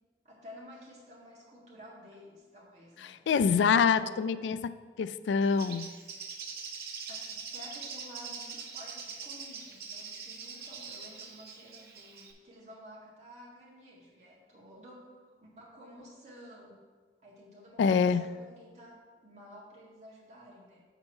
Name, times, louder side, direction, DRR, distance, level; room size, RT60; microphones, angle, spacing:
voice 1, 0.2-3.2 3.8-4.3 7.1-15.1 15.4-16.8 17.2-20.8, equal, 40° right, -5 dB, 1.8 m, -52 dB
voice 2, 3.0-5.9 17.8-18.2, left 6 dB, 90° left, 14 dB, 0.3 m, -26 dB
Bird, 5.4-12.3, right 5 dB, 60° right, 0.8 m, -43 dB
7.0 x 4.5 x 5.3 m, 1.4 s
head